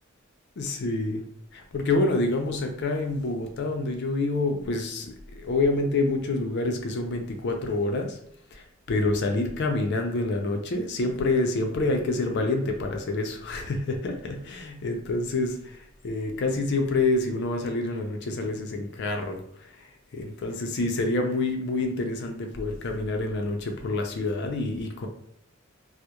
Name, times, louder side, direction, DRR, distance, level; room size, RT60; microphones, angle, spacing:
voice 1, 0.6-1.2 1.5-8.2 8.5-19.9 20.1-25.1, left 2 dB, 55° left, 4 dB, 0.4 m, -27 dB
2.8 x 2.0 x 2.2 m, 0.72 s
head